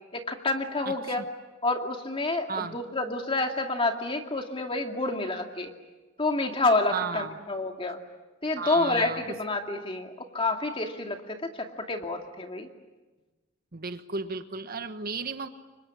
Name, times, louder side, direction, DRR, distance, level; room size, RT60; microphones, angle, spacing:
voice 1, 0.1-1.2 1.6-5.7 6.2-8.0 8.4-12.7, left 2 dB, 30° left, 4 dB, 2.4 m, -28 dB
voice 2, 0.8-1.3 2.5-2.8 6.9-7.4 8.6-9.4 13.7-15.5, right 5 dB, 50° right, 9 dB, 1.2 m, -34 dB
30.0 x 24.5 x 7.5 m, 1.2 s
head